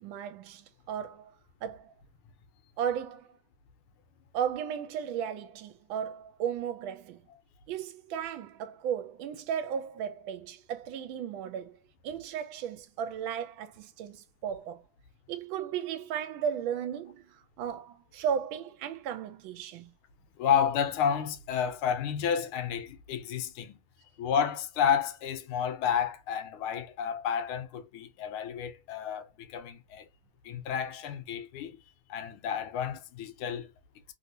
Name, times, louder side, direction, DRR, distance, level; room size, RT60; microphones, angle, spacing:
voice 1, 0.0-1.3 1.6-1.9 2.8-3.3 4.3-7.2 7.7-11.8 12.0-14.8 15.3-19.9, right 8 dB, 75° right, 1.3 m, -35 dB
voice 2, 20.4-23.8 24.2-30.0 30.4-31.8 32.1-33.7, left 8 dB, 85° left, 1.5 m, -30 dB
3.3 x 2.7 x 2.6 m
omnidirectional pair, 2.3 m